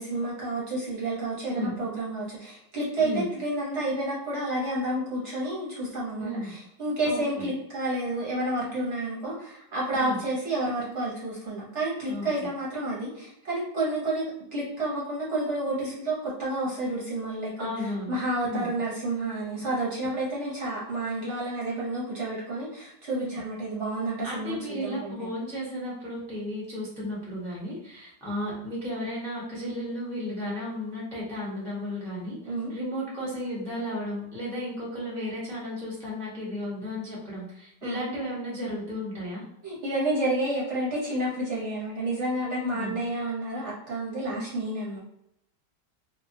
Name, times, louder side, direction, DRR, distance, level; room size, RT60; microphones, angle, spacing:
voice 1, 0.0-14.2 14.5-25.3 32.5-32.7 37.8-38.0 39.6-45.0, right 1 dB, 55° right, -6 dB, 0.9 m, -30 dB
voice 2, 6.2-6.5 7.0-7.5 9.9-10.2 12.1-12.5 17.6-18.2 18.4-18.7 24.2-39.4 42.6-43.0 44.3-44.4, equal, 5° left, -6 dB, 0.4 m, -34 dB
3.0 x 2.1 x 2.6 m, 0.80 s
omnidirectional pair, 1.9 m